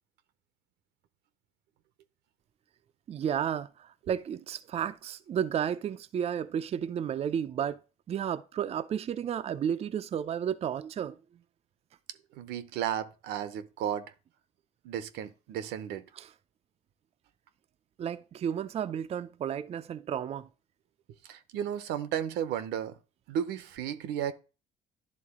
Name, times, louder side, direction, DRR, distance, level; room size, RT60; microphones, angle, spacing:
voice 1, 3.1-7.8 8.1-11.2 16.2-16.3 18.0-20.5, right 9 dB, 35° right, 0.4 m, -32 dB
voice 2, 12.3-14.1 14.8-16.0 21.2-23.0 23.3-24.3, right 9 dB, 85° right, 0.8 m, -34 dB
11.0 x 3.7 x 3.6 m
cardioid pair, 110°, 17 cm